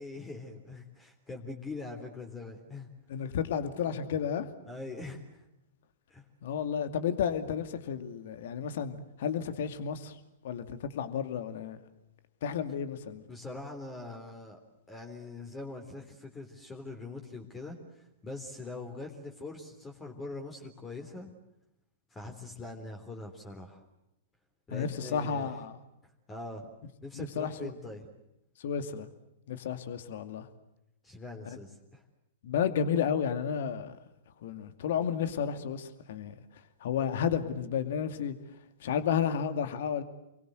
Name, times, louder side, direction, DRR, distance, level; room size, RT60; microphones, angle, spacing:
voice 1, 0.0-2.9 3.2-3.3 4.7-5.4 6.1-6.2 13.3-14.6 14.9-21.3 22.1-23.8 24.7-25.5 26.3-26.6 27.0-28.1 31.0-32.0, left 2 dB, 15° left, 3 dB, 3.7 m, -43 dB
voice 2, 3.1-4.5 6.4-10.2 10.4-11.8 12.4-13.2 24.7-25.8 27.1-27.7 28.6-29.1 29.5-30.5 32.4-34.0 34.4-36.3 36.8-38.4 38.8-40.0, left 7 dB, 55° left, 10 dB, 2.4 m, -32 dB
29.0 x 23.0 x 7.9 m, 0.87 s
figure-of-eight pair, 105°, 0 cm